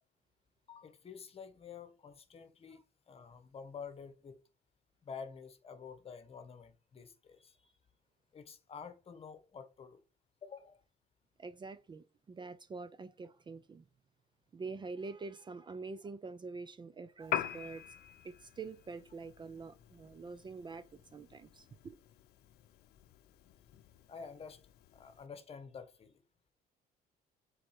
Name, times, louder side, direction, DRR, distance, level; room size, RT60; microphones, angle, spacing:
voice 1, 0.7-2.8 3.1-4.4 5.0-7.8 8.3-10.0 10.4-10.8 24.1-24.6 24.9-26.2, left 6 dB, 35° left, 1.2 m, -49 dB
voice 2, 11.4-13.8 14.5-18.0 18.2-22.0, right 4 dB, 25° right, 0.5 m, -46 dB
Piano, 17.2-25.3, left 11 dB, 65° left, 0.7 m, -45 dB
7.5 x 4.0 x 4.7 m
cardioid pair, 110°, 17 cm